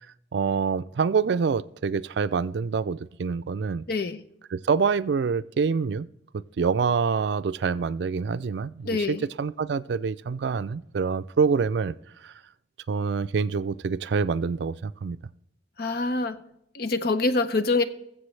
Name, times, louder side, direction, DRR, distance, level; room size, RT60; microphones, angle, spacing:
voice 1, 0.3-3.8 4.5-6.1 6.3-11.9 12.2-12.3 12.9-15.2, right 5 dB, 70° right, 0.4 m, -26 dB
voice 2, 3.9-4.2 8.8-9.3 15.8-16.4 16.7-17.8, left 3 dB, 55° left, 0.7 m, -25 dB
21.0 x 7.5 x 3.3 m
head